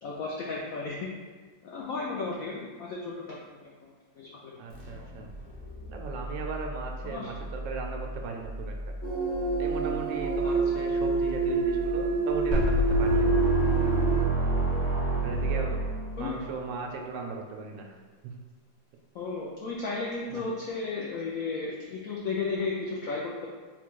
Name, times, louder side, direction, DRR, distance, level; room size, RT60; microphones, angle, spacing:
voice 1, 0.0-1.1 1.6-4.6 7.0-7.3 10.4-10.5 16.2-16.4 19.1-23.5, left 4 dB, 80° left, -3 dB, 0.7 m, -34 dB
voice 2, 4.6-5.3 5.9-8.7 9.6-12.7 13.0-13.3 15.2-15.8 16.2-17.9 20.3-20.4, right 4 dB, 80° right, 1 dB, 1.2 m, -37 dB
sound 1, 4.7-16.2, equal, 55° left, 1.1 m, -39 dB
sound 2, 9.0-14.2, right 3 dB, 15° left, 0.5 m, -27 dB
sound 3, 12.5-16.5, right 2 dB, 20° right, 1.2 m, -27 dB
3.9 x 2.3 x 4.5 m, 1.4 s
omnidirectional pair, 2.0 m